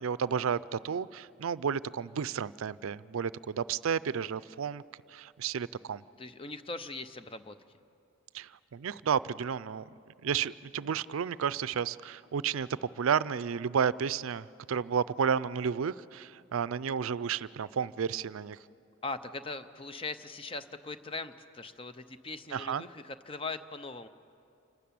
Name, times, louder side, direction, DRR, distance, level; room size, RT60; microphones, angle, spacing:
voice 1, 0.0-4.8 5.1-6.0 8.3-9.8 10.2-18.6 22.5-22.8, right 7 dB, 85° right, 18 dB, 0.4 m, -32 dB
voice 2, 6.2-7.6 19.0-24.1, left 3 dB, 25° left, 10 dB, 0.6 m, -40 dB
27.5 x 12.5 x 8.7 m, 2.5 s
head